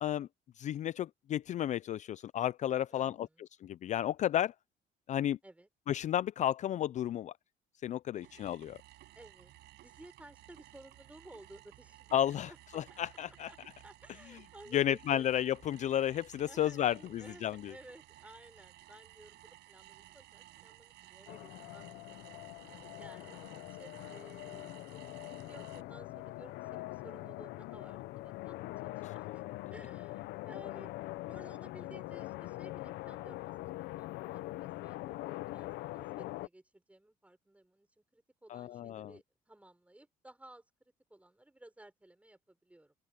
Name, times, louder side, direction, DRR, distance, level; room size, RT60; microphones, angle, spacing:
voice 1, 0.6-3.3 3.6-4.5 5.1-5.4 5.9-7.3 7.8-8.8 12.1-13.5 14.7-17.7 38.5-39.1, left 11 dB, 45° left, 0.4 m, -32 dB
voice 2, 2.9-3.4 5.4-5.7 8.2-8.4 9.1-9.5 9.8-12.6 12.9-13.0 13.5-13.6 13.8-15.2 16.4-29.4 29.7-42.9, right 1 dB, 10° right, 6.3 m, -56 dB
sound 1, 8.2-25.8, right 16 dB, 80° right, 7.8 m, -57 dB
sound 2, 21.3-36.5, left 18 dB, 85° left, 0.7 m, -43 dB
open air
cardioid pair, 110°, 17 cm